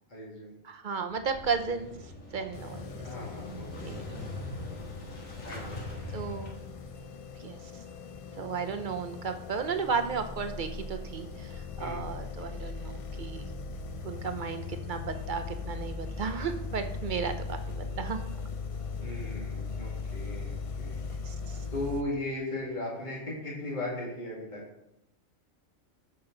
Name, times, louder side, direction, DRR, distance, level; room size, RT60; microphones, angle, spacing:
voice 1, 0.1-0.6 3.0-3.9 5.4-6.3 11.8-12.0 19.0-21.0 21.7-24.6, left 1 dB, 35° left, -5 dB, 2.3 m, -37 dB
voice 2, 0.6-3.0 3.8-4.2 6.1-6.6 7.4-7.6 8.3-13.5 14.0-18.3 19.0-19.1 21.2-21.6, right 5 dB, 45° right, 8 dB, 0.7 m, -34 dB
Motorcycle / Engine starting, 1.1-6.9, left 1 dB, 90° left, 2.1 m, -42 dB
sound 1, 2.5-22.0, left 4 dB, 65° left, 0.3 m, -39 dB
13.0 x 5.5 x 3.9 m, 0.84 s
omnidirectional pair, 1.3 m